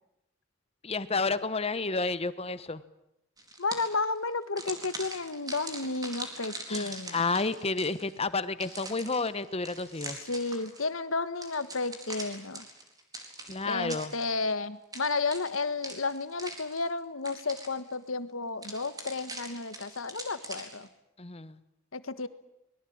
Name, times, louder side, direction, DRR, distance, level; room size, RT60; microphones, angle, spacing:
voice 1, 0.8-2.8 6.7-10.2 13.5-14.1 21.2-21.5, left 3 dB, 30° left, 13 dB, 1.2 m, -31 dB
sound 1, 3.4-4.1 4.6-8.1 8.6-10.9 11.4-14.5 14.9-17.0 17.2-17.9 18.6-20.9, right 2 dB, 20° right, 4.2 m, -42 dB
voice 2, 3.6-7.2 10.0-12.6 13.6-20.9 21.9-22.3, left 3 dB, 80° left, 12 dB, 1.5 m, -32 dB
24.5 x 21.5 x 8.8 m, 0.85 s
head